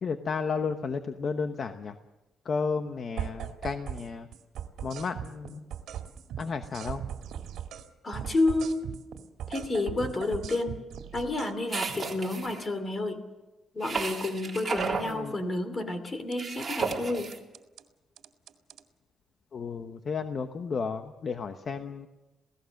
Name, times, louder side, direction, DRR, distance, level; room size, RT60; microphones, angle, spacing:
voice 1, 0.0-2.0 2.4-4.3 4.8-5.6 6.4-7.0 15.0-15.3 19.5-22.1, left 5 dB, 45° left, 8 dB, 1.0 m, -33 dB
sound 1, 3.2-4.1 4.3-7.9 8.1-11.5 16.3-16.7 17.2-17.8 18.2-18.8, right 9 dB, 80° right, 2.1 m, -38 dB
voice 2, 8.0-8.8 9.5-10.8 11.1-13.2 13.7-17.3, left 2 dB, 25° left, 10 dB, 2.8 m, -30 dB
sound 2, 11.7-12.6 13.8-15.1 16.4-17.4, right 5 dB, 25° right, 3.5 m, -33 dB
28.0 x 17.5 x 6.5 m, 1.1 s
cardioid pair, 135°, 0 cm